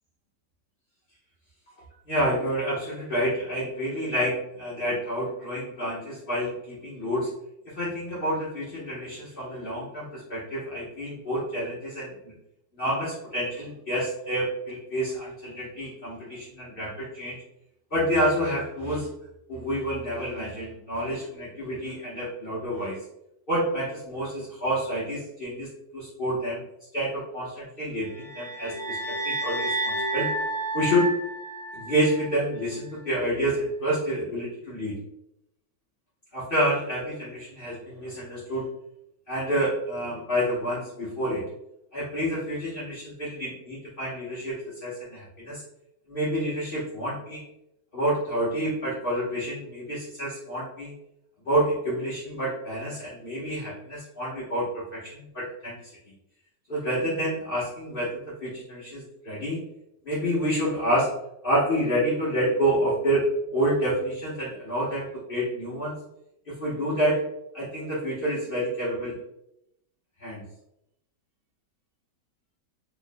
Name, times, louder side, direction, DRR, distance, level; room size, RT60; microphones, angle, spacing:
voice 1, 2.1-7.3 7.8-12.3 12.7-17.4 17.9-19.1 19.5-23.0 23.5-26.6 26.9-30.3 30.7-31.1 31.7-35.0 36.3-38.7 39.3-41.5 41.9-45.6 46.1-47.4 47.9-50.9 51.4-55.9 56.7-59.6 60.0-61.1 61.4-66.0 66.5-67.2 67.5-69.2 70.2-70.4, equal, 35° left, -9 dB, 1.1 m, -28 dB
sound 1, 28.1-32.4, right 2 dB, 70° right, 1.3 m, -30 dB
4.5 x 3.1 x 2.2 m, 0.80 s
omnidirectional pair, 2.0 m